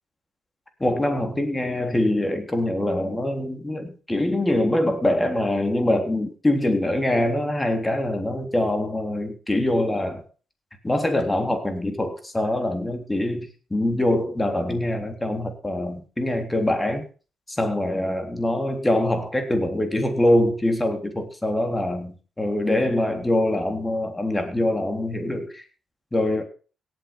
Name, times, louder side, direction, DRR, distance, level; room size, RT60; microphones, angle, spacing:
voice 1, 0.8-10.2 10.8-17.0 17.5-25.6 26.1-26.4, left 1 dB, 15° left, 5 dB, 3.4 m, -24 dB
17.5 x 8.2 x 5.4 m, 0.36 s
cardioid pair, 95°, 0 cm